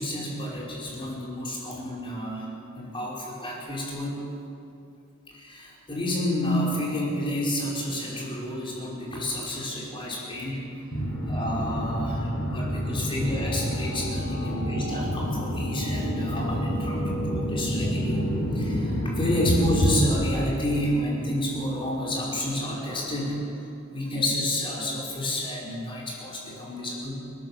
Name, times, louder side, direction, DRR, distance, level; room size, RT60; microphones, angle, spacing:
voice 1, 0.0-2.5 2.8-4.2 5.3-10.7 11.3-18.3 18.5-23.6 23.9-27.2, left 1 dB, 25° left, -4 dB, 5.4 m, -30 dB
sound 1, 10.9-20.1, equal, 55° left, 6.7 m, -28 dB
29.0 x 12.5 x 7.7 m, 2.6 s
head